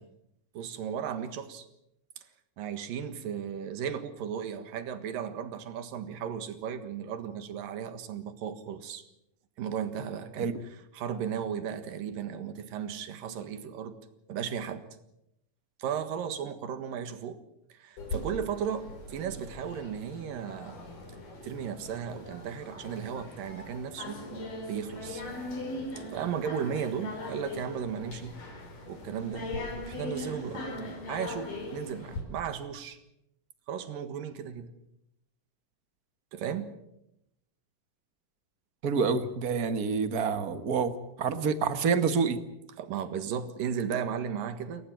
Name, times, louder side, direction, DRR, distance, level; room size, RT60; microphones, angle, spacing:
voice 1, 0.5-1.7 2.6-9.0 9.6-14.0 14.3-14.8 15.8-17.4 17.7-20.8 21.4-24.2 24.7-25.2 26.0-28.4 28.9-29.5 29.9-30.7 31.1-33.0 33.7-34.7 36.3-36.7 42.8-44.9, right 8 dB, 85° right, 10 dB, 3.4 m, -35 dB
sound 1, 18.0-32.2, left 2 dB, 75° left, 6.4 m, -40 dB
voice 2, 38.8-40.9 41.2-42.4, right 5 dB, 60° right, 10 dB, 0.9 m, -27 dB
29.5 x 14.5 x 9.0 m, 0.84 s
omnidirectional pair, 3.9 m